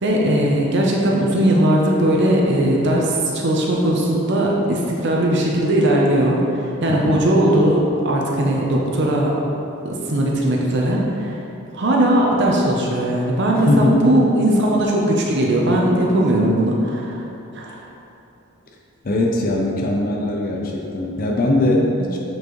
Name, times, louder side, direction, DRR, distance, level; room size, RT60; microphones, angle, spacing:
voice 1, 0.0-9.3 9.8-11.4 11.7-17.2 17.5-17.8, right 1 dB, 55° right, -2 dB, 0.7 m, -18 dB
voice 2, 6.9-7.3 13.6-14.0 19.0-22.2, left 1 dB, 45° left, -1 dB, 0.6 m, -20 dB
7.9 x 4.6 x 3.1 m, 2.9 s
head